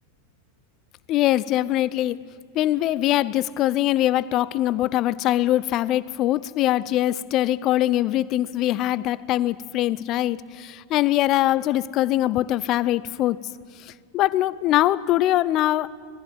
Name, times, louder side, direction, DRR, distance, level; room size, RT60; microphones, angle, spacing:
voice 1, 1.1-2.2 2.5-13.4 13.9-15.9, left 14 dB, 35° left, 0.5 m, -22 dB
19.0 x 15.5 x 9.2 m
figure-of-eight pair, 90°, 0 cm